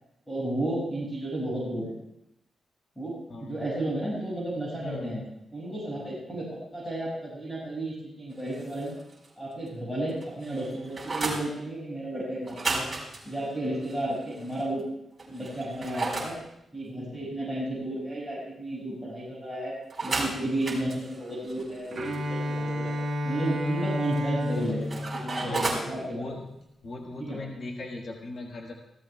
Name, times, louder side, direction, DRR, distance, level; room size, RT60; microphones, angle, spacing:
voice 1, 0.3-1.9 3.0-5.2 5.5-8.9 9.4-12.9 13.3-14.8 15.3-16.4 16.7-19.7 20.0-23.0 23.2-26.3 27.2-27.4, right 1 dB, 5° left, -7 dB, 5.8 m, -33 dB
voice 2, 3.3-3.6 4.8-5.1 25.4-26.5 26.8-28.7, left 2 dB, 50° left, 0 dB, 1.6 m, -39 dB
sound 1, 8.4-9.3 9.6-9.7 10.1-11.4 12.4-14.6 15.2-16.3 19.9-22.2 24.1-25.9, right 3 dB, 25° right, 4.5 m, -34 dB
Bowed string instrument, 21.9-26.0, left 1 dB, 50° right, 1.5 m, -31 dB
25.5 x 16.0 x 2.3 m, 0.82 s
wide cardioid pair, 165°, 0 cm